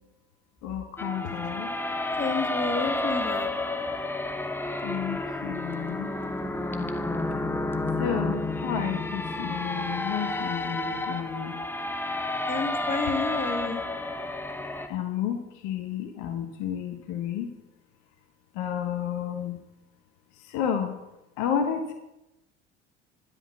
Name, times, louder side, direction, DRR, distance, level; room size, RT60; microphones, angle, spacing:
voice 1, 0.6-1.7 4.8-6.1 8.0-11.6 14.9-17.5 18.5-19.6 20.4-20.9 21.4-21.9, left 8 dB, 65° left, 5 dB, 1.3 m, -31 dB
sound 1, 1.0-14.9, left 2 dB, 5° left, 0.8 m, -30 dB
voice 2, 2.2-3.5 12.5-13.8, left 4 dB, 25° left, 4 dB, 2.0 m, -30 dB
10.5 x 5.5 x 8.4 m, 0.93 s
hypercardioid pair, 60°, 34 cm